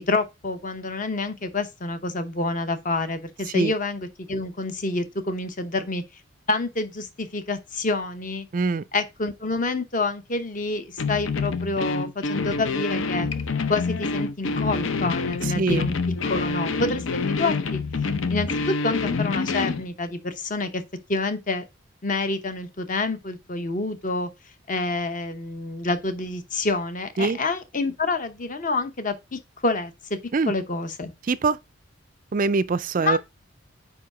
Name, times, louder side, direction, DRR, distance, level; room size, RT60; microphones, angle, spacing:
voice 1, 0.1-6.0 6.5-8.5 8.9-13.3 13.7-15.9 16.2-17.8 18.3-20.8 21.1-21.6 22.0-24.3 24.7-30.2 30.5-31.1 33.0-33.2, left 3 dB, 40° left, 0.8 m, -28 dB
voice 2, 8.5-8.8 15.4-15.9 27.2-27.4 30.3-30.5 31.3-31.6 32.3-33.2, right 4 dB, 40° right, 0.3 m, -23 dB
sound 1, 11.0-19.8, left 4 dB, 70° left, 0.6 m, -27 dB
4.9 x 4.8 x 4.8 m
head